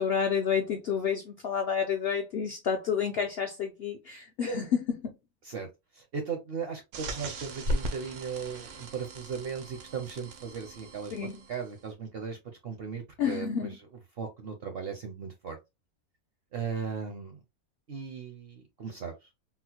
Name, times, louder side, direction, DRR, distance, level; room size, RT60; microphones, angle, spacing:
voice 1, 0.0-5.1 11.1-11.4 13.2-13.8, left 7 dB, 70° left, 0.5 m, -30 dB
voice 2, 6.0-11.1 11.5-12.4 12.6-13.8 14.2-15.6 16.5-17.4 17.9-19.1, right 6 dB, 55° right, 0.7 m, -37 dB
sound 1, 6.9-11.8, equal, 85° right, 1.2 m, -37 dB
3.7 x 2.1 x 2.8 m
omnidirectional pair, 1.6 m